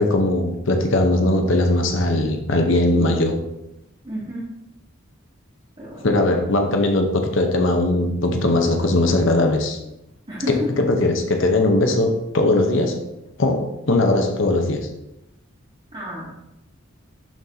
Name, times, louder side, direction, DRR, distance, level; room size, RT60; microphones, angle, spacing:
voice 1, 0.0-3.4 6.0-9.8 10.8-13.0 13.4-14.9, left 2 dB, 70° left, 4 dB, 0.9 m, -19 dB
voice 2, 4.0-4.4 5.8-6.1 10.3-10.7 15.9-16.5, equal, 30° right, -11 dB, 2.2 m, -30 dB
10.5 x 4.0 x 2.8 m, 0.86 s
head